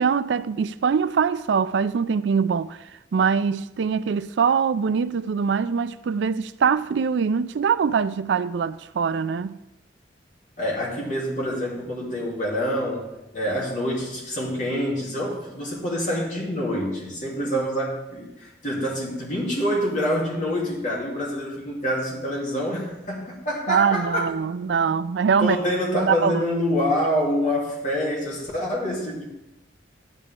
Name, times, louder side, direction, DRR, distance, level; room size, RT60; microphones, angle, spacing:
voice 1, 0.0-2.8 3.1-9.6 23.7-25.6 25.9-26.4, right 6 dB, 65° right, 0.4 m, -23 dB
voice 2, 10.6-13.1 13.3-24.3 25.4-29.2, equal, 40° left, 3.2 m, -26 dB
13.0 x 10.5 x 3.7 m
head